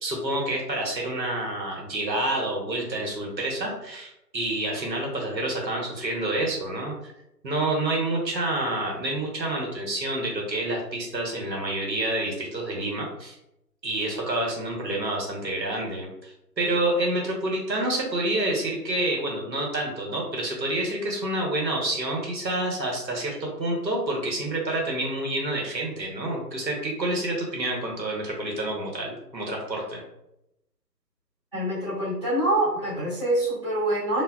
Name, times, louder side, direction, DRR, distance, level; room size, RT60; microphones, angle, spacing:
voice 1, 0.0-6.9 7.4-13.3 13.8-30.0, right 1 dB, 85° right, -1 dB, 1.1 m, -28 dB
voice 2, 31.5-34.2, right 1 dB, 15° right, -15 dB, 0.8 m, -25 dB
3.1 x 2.1 x 2.2 m, 0.84 s
figure-of-eight pair, 155°, 50 cm